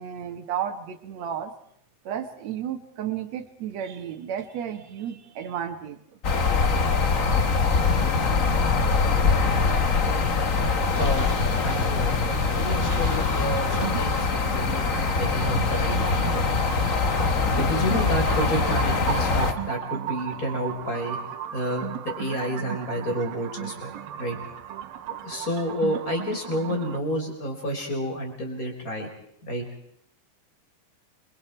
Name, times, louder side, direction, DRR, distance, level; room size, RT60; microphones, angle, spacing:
voice 1, 0.0-1.5 2.1-6.0 6.3-6.5, right 9 dB, 55° right, 7 dB, 2.6 m, -33 dB
sound 1, 6.2-19.5, left 4 dB, 85° left, 0.7 m, -23 dB
sound 2, 10.3-15.2, equal, 5° left, 2.3 m, -40 dB
voice 2, 11.0-11.3 11.6-16.6 17.4-21.2 21.5-23.9 24.2-24.4 25.2-29.1 29.4-29.6, equal, 25° left, 2 dB, 5.0 m, -30 dB
sound 3, 12.7-27.0, right 11 dB, 85° right, 2.9 m, -36 dB
28.0 x 24.5 x 4.6 m, 0.68 s
omnidirectional pair, 3.9 m